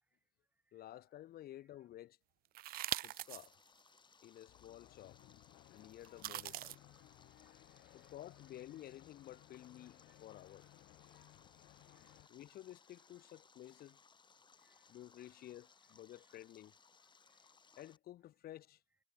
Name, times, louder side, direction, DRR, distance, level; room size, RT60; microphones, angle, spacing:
voice 1, 0.7-2.2 3.0-3.5 4.2-5.2 5.7-6.8 7.9-10.7 12.3-14.0 14.9-16.7 17.8-18.8, left 13 dB, 65° left, 1.6 m, -53 dB
sound 1, 2.5-3.5 4.0-4.1 6.0-6.8, right 16 dB, 60° right, 0.4 m, -41 dB
Stream, 3.0-18.0, left 5 dB, 25° left, 1.8 m, -66 dB
sound 2, 4.5-12.3, left 18 dB, 85° left, 3.7 m, -62 dB
voice 2, 6.8-8.1 10.1-10.2 11.0-11.4 11.8-12.3 14.6-14.9 16.1-16.2 17.2-17.4, right 2 dB, 10° right, 0.7 m, -77 dB
cardioid pair, 110°, 17 cm